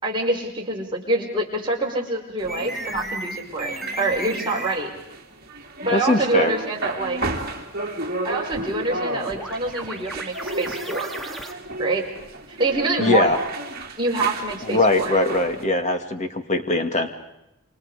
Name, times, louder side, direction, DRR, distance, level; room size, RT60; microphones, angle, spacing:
voice 1, 0.0-4.9 5.8-7.2 8.2-11.1 11.8-12.1 12.5-13.4 14.0-15.1, right 2 dB, 20° right, -2 dB, 5.5 m, -26 dB
sound 1, 2.4-15.6, right 1 dB, 40° right, 3.1 m, -33 dB
sound 2, 2.5-4.8 8.5-11.5, right 1 dB, ahead, 2.0 m, -34 dB
voice 2, 5.9-6.5 13.0-13.4 14.6-17.1, left 2 dB, 30° left, 6 dB, 2.3 m, -21 dB
28.5 x 26.5 x 5.1 m, 0.86 s
head